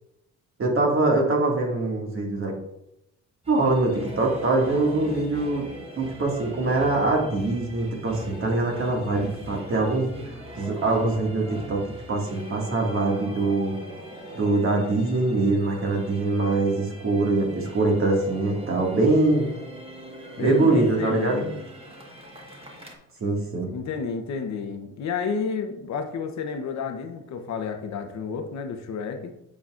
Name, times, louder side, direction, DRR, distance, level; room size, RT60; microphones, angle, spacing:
voice 1, 0.6-2.5 3.5-5.7 6.0-10.1 10.6-11.8 12.1-13.7 14.3-19.5 20.4-21.5 23.2-23.7, right 2 dB, 45° right, 0 dB, 2.0 m, -23 dB
sound 1, 3.4-23.0, right 1 dB, 20° right, 1.4 m, -41 dB
voice 2, 20.4-21.6 23.7-29.3, left 5 dB, 65° left, 6 dB, 0.9 m, -31 dB
8.3 x 6.0 x 2.5 m, 0.82 s
cardioid pair, 90°, 30 cm